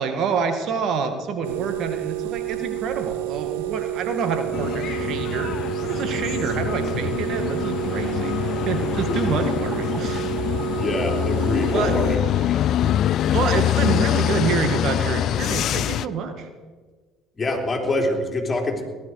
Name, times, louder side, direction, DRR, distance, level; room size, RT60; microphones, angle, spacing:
voice 1, 0.0-10.3 10.7-10.8 11.7-11.9 12.8-16.5, right 6 dB, 60° right, 7 dB, 1.7 m, -27 dB
sound 1, 1.4-12.2, right 16 dB, 80° right, 0.4 m, -29 dB
sound 2, 4.5-16.1, left 11 dB, 55° left, 0.4 m, -24 dB
sound 3, 7.8-12.4 13.6-15.9, right 2 dB, 30° right, 3.7 m, -44 dB
voice 2, 10.8-12.6 17.4-18.8, left 2 dB, 25° left, 1 dB, 3.4 m, -25 dB
18.5 x 12.0 x 4.8 m, 1.4 s
hypercardioid pair, 65°, 0 cm